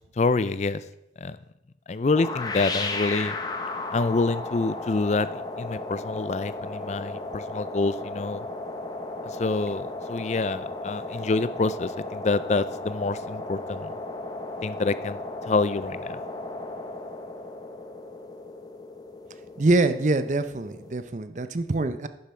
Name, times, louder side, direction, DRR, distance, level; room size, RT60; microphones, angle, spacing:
voice 1, 0.2-0.8 1.2-1.4 1.9-3.4 3.9-8.5 9.2-13.9 14.6-15.2 15.5-16.2, left 3 dB, 40° left, 15 dB, 0.4 m, -27 dB
sound 1, 2.1-21.0, left 2 dB, 20° left, 0.8 m, -35 dB
voice 2, 19.6-22.1, right 2 dB, 45° right, 11 dB, 0.6 m, -24 dB
11.0 x 7.1 x 4.4 m, 0.85 s
head